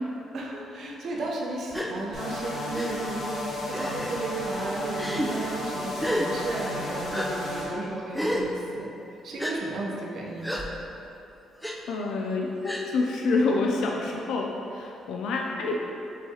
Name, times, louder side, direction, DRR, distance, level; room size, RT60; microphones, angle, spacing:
voice 1, 0.3-8.9 9.2-10.6, right 2 dB, 65° right, -2 dB, 0.6 m, -34 dB
Gasp, 1.7-1.9 2.7-2.9 3.7-4.1 4.9-5.3 6.0-6.3 7.1-7.3 8.1-8.5 9.4-9.5 10.4-10.6 11.6-11.8 12.6-12.9, equal, ahead, 0.4 m, -29 dB
sound 1, 2.1-7.7, left 1 dB, 60° left, 1.1 m, -33 dB
voice 2, 11.9-15.8, left 3 dB, 80° left, -1 dB, 0.3 m, -27 dB
6.9 x 2.3 x 2.8 m, 2.8 s
cardioid pair, 90°, 0 cm